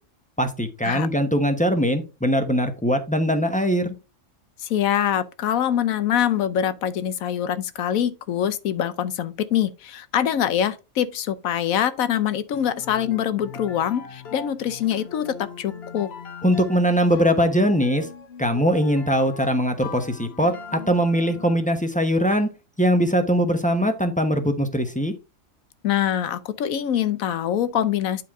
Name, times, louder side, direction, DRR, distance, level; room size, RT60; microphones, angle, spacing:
voice 1, 0.4-3.9 16.4-18.1 18.4-22.5 22.8-25.1, equal, 5° left, 0.9 m, -21 dB
voice 2, 4.6-16.1 25.8-28.2, left 10 dB, 85° left, 1.2 m, -24 dB
sound 1, 12.5-21.7, left 5 dB, 50° left, 1.1 m, -40 dB
9.3 x 4.6 x 3.6 m
omnidirectional pair, 1.4 m